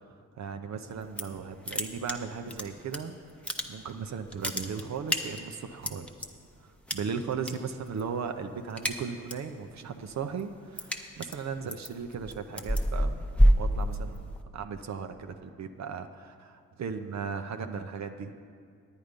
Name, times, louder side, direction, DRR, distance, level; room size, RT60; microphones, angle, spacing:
voice 1, 0.4-3.2 3.7-6.1 6.9-13.3 13.6-18.3, right 6 dB, 55° right, 6 dB, 0.6 m, -37 dB
sound 1, 0.9-1.4 1.6-3.0 3.3-4.0 4.3-6.3 6.9-7.5 7.8-8.1 8.4-9.5 9.9-14.4, equal, 5° left, 0.8 m, -27 dB
9.8 x 9.2 x 5.1 m, 2.2 s
cardioid pair, 65°, 33 cm